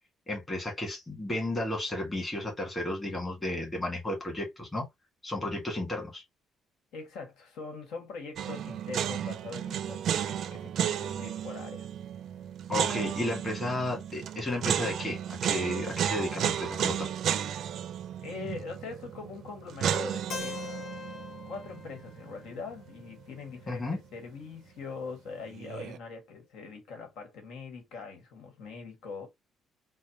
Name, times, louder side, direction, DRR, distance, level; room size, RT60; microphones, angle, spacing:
voice 1, 0.3-4.8 5.2-6.2 12.7-17.1 23.7-24.0, left 1 dB, 20° left, 1.7 m, -33 dB
voice 2, 6.9-11.9 18.2-20.6 21.5-29.3, left 4 dB, 90° left, 1.3 m, -42 dB
sound 1, 8.4-23.4 23.6-23.7 25.5-26.0, right 9 dB, 60° right, 0.4 m, -33 dB
Keyboard (musical), 20.3-24.2, left 6 dB, 45° left, 0.6 m, -44 dB
4.1 x 2.1 x 2.9 m
cardioid pair, 145°, 0 cm